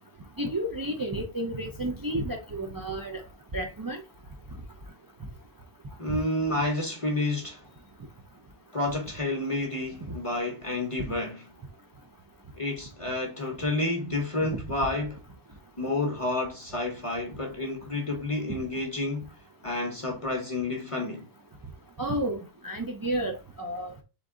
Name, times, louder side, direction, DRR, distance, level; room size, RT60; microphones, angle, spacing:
voice 1, 0.4-3.2 3.5-4.0 22.0-23.9, right 1 dB, 35° right, 0.3 m, -31 dB
voice 2, 6.0-7.6 8.7-11.5 12.6-15.2 15.8-19.3 19.6-21.2, left 2 dB, 35° left, 0.9 m, -30 dB
3.8 x 3.4 x 3.7 m
omnidirectional pair, 1.1 m